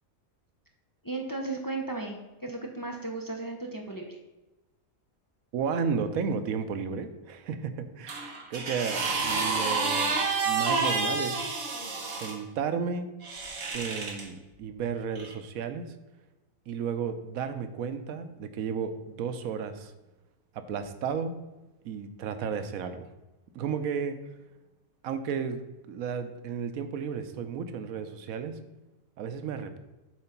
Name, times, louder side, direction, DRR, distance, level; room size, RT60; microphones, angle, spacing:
voice 1, 1.0-4.2, right 2 dB, 20° left, 1 dB, 0.6 m, -35 dB
voice 2, 5.5-11.4 12.1-13.1 13.7-15.9 16.7-19.9 20.5-21.4 21.8-23.1 23.5-24.2 25.0-28.6 29.2-29.8, right 6 dB, 90° right, 9 dB, 1.1 m, -33 dB
sound 1, 8.1-12.4 13.2-14.2 15.2-15.3, right 4 dB, 65° right, 1.5 m, -29 dB
7.7 x 3.9 x 5.8 m, 1.1 s
omnidirectional pair, 1.4 m